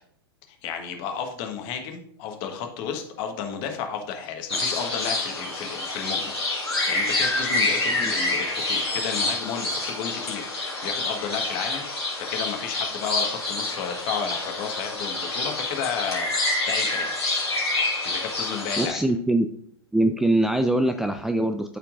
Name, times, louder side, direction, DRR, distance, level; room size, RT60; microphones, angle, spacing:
voice 1, 0.5-16.3 16.7-17.1 18.0-19.0, left 7 dB, 40° left, 4 dB, 1.4 m, -32 dB
sound 1, 4.5-18.9, left 2 dB, 90° left, 3.0 m, -27 dB
voice 2, 18.8-19.5 19.9-21.8, right 1 dB, 5° right, 6 dB, 0.3 m, -23 dB
13.0 x 4.4 x 2.5 m, 0.64 s
figure-of-eight pair, 100°, 13 cm